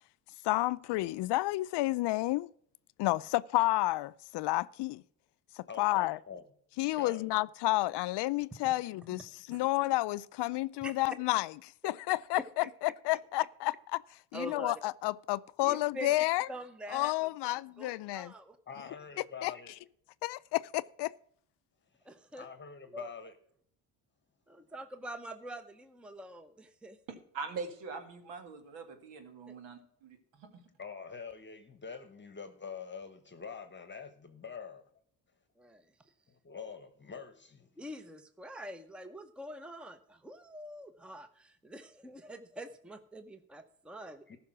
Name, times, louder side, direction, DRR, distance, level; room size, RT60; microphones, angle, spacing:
voice 1, 0.4-2.5 3.0-5.0 5.6-6.2 6.8-11.5 11.8-14.0 14.3-16.5 16.9-18.3 19.4-19.5 20.2-21.1, left 18 dB, 70° left, 0.5 m, -31 dB
voice 2, 5.7-6.4 6.9-7.3 18.7-19.7 22.4-23.3 30.8-34.8 36.3-37.7 44.3-44.4, left 6 dB, 25° left, 1.2 m, -45 dB
voice 3, 14.3-14.7 15.6-16.1 16.5-18.6 22.0-22.5 22.9-23.1 24.5-27.0 29.5-29.6 35.6-35.9 37.8-44.4, equal, ahead, 0.7 m, -45 dB
voice 4, 27.3-30.6, right 4 dB, 80° right, 2.2 m, -43 dB
14.0 x 5.9 x 6.0 m
cardioid pair, 105°, 43 cm